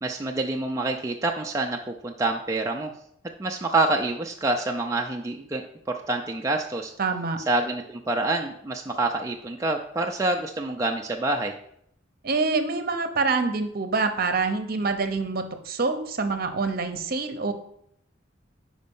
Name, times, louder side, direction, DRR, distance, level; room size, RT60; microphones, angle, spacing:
voice 1, 0.0-2.9 3.4-5.6 5.9-6.9 7.5-11.5, right 2 dB, 15° right, 1 dB, 0.4 m, -27 dB
voice 2, 7.0-7.4 12.2-17.5, right 4 dB, 50° right, 7 dB, 0.8 m, -26 dB
5.3 x 5.1 x 5.4 m, 0.71 s
head